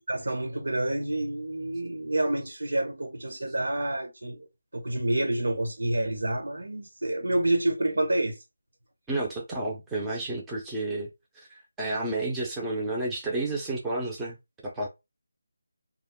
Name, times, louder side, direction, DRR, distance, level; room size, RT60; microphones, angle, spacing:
voice 1, 0.1-4.5 4.7-8.4, right 1 dB, 80° right, 1.1 m, -28 dB
voice 2, 9.1-11.1 11.3-14.4 14.6-14.9, right 2 dB, 5° right, 0.5 m, -31 dB
2.2 x 2.1 x 3.5 m
figure-of-eight pair, 170°, 0 cm